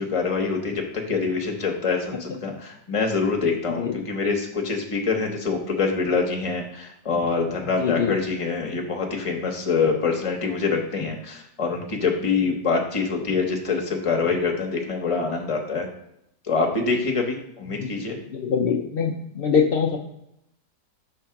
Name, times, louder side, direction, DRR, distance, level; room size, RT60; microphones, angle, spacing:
voice 1, 0.0-15.9 16.5-18.2, left 4 dB, 25° left, 2 dB, 0.8 m, -25 dB
voice 2, 7.8-8.1 17.7-17.9 18.3-20.0, left 6 dB, 70° left, 0 dB, 0.5 m, -23 dB
5.4 x 3.8 x 5.7 m, 0.80 s
omnidirectional pair, 1.7 m